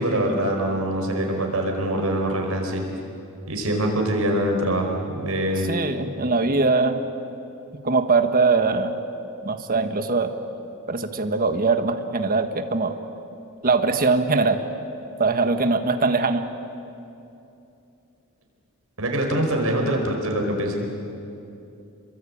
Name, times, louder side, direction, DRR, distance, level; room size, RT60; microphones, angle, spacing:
voice 1, 0.0-2.8 3.5-5.7 19.0-20.8, right 1 dB, 75° right, 2 dB, 4.9 m, -24 dB
voice 2, 5.7-7.0 7.8-9.0 9.4-10.3 10.9-13.0 13.6-14.6 15.2-16.5, right 3 dB, 40° right, 7 dB, 1.5 m, -21 dB
28.0 x 22.5 x 8.7 m, 2.8 s
head